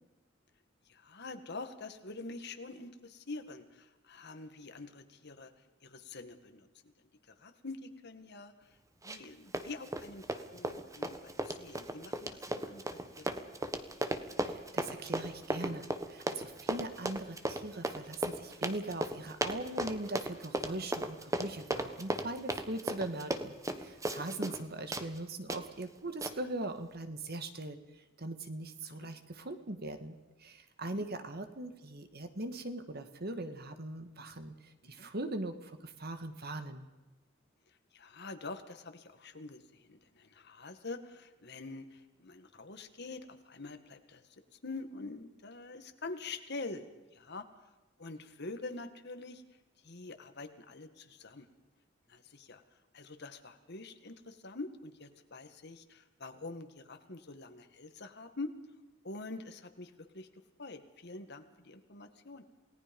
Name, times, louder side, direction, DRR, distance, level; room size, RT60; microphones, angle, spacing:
voice 1, 0.9-5.5 5.8-6.7 7.4-8.7 9.0-12.9 13.2-13.3 20.7-20.8 24.3-24.5 29.0-29.1 30.9-31.0 34.8-35.1 37.9-44.2 44.5-46.9 47.1-47.4 48.0-49.4 49.8-51.5 52.1-52.6 52.9-58.5 59.0-62.4, left 3 dB, 55° left, 8 dB, 1.9 m, -46 dB
Run, 9.0-9.3 9.5-24.6 24.9-25.1 25.5-25.6 26.2-26.3, right 1 dB, 15° right, 1.3 m, -36 dB
voice 2, 14.4-36.8, right 2 dB, 50° right, 8 dB, 1.9 m, -41 dB
28.5 x 18.5 x 5.4 m, 1.1 s
head